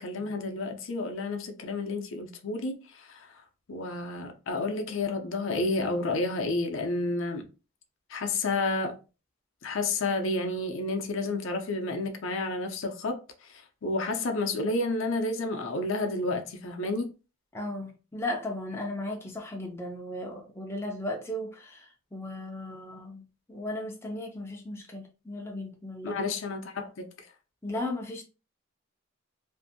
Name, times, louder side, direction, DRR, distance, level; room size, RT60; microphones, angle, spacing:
voice 1, 0.0-3.3 3.7-7.5 8.1-9.0 9.6-13.2 13.5-17.1 26.0-27.1, left 2 dB, 65° left, 0.5 m, -30 dB
voice 2, 17.5-26.2 27.6-28.2, left 1 dB, 10° left, 0.4 m, -36 dB
2.6 x 2.5 x 2.6 m
head